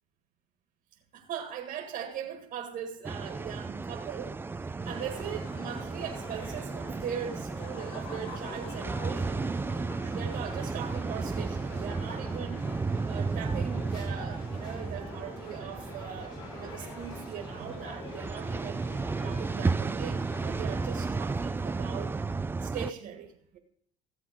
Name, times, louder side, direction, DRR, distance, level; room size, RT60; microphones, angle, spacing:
voice 1, 1.1-9.5 10.0-12.7 13.0-18.8 19.2-22.1 22.6-23.6, right 8 dB, 55° right, 2 dB, 1.8 m, -40 dB
sound 1, 3.0-22.9, right 4 dB, 10° right, 0.4 m, -34 dB
sound 2, 4.8-21.1, left 3 dB, 75° left, 5.6 m, -46 dB
15.5 x 7.7 x 5.1 m, 0.67 s
supercardioid pair, 110°, 18 cm